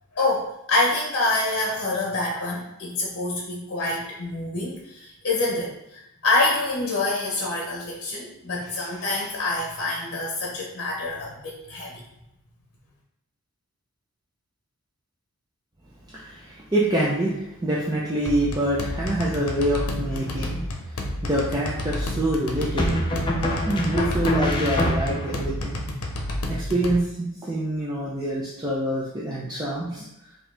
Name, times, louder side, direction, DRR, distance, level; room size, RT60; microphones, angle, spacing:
voice 1, 0.1-12.0, left 2 dB, 50° left, -2 dB, 0.9 m, -26 dB
voice 2, 16.1-20.6 20.9-23.1 23.6-25.8 26.5-30.0, right 1 dB, 20° right, -6 dB, 0.6 m, -26 dB
sound 1, 18.3-27.0, left 1 dB, 90° left, 0.7 m, -30 dB
sound 2, 20.1-20.7 22.8-25.4, equal, 20° left, 0.6 m, -26 dB
4.6 x 2.8 x 3.4 m, 0.85 s
head